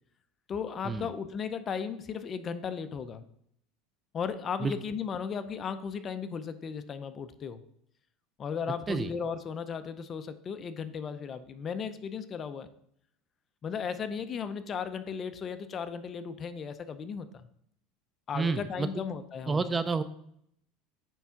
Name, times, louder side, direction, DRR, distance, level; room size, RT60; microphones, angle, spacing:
voice 1, 0.5-3.2 4.1-7.6 8.4-12.7 13.6-17.5 18.3-19.6, left 6 dB, 30° left, 11 dB, 0.6 m, -36 dB
voice 2, 18.3-19.0 19.5-20.0, right 4 dB, 15° right, 12 dB, 0.4 m, -30 dB
9.2 x 3.6 x 5.7 m, 0.69 s
supercardioid pair, 145°, 0 cm